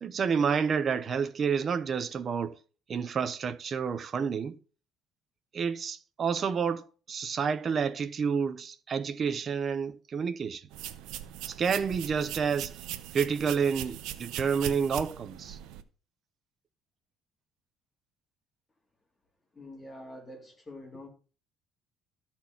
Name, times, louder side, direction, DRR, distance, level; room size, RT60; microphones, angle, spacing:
voice 1, 0.0-2.6 2.9-4.6 5.5-10.6 11.4-12.7 13.1-15.6, right 6 dB, 35° right, 0.7 m, -29 dB
sound 1, 10.7-15.8, right 12 dB, 80° right, 0.8 m, -40 dB
voice 2, 19.5-21.1, left 1 dB, 15° left, 2.8 m, -45 dB
13.0 x 4.4 x 5.9 m
cardioid pair, 145°, 0 cm